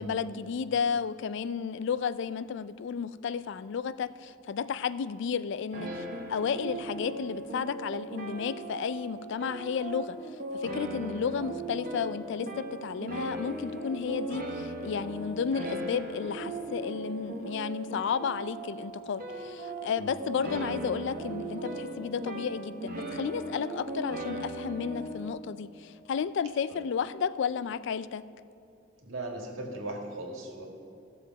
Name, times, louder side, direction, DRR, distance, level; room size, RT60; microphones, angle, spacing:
voice 1, 0.0-10.2 10.5-28.2, left 6 dB, 65° left, 15 dB, 0.4 m, -32 dB
sound 1, 5.7-25.3, right 2 dB, 50° right, 1.2 m, -38 dB
voice 2, 29.0-30.7, right 2 dB, 85° right, 1 dB, 1.8 m, -38 dB
15.0 x 6.9 x 4.6 m, 2.6 s
head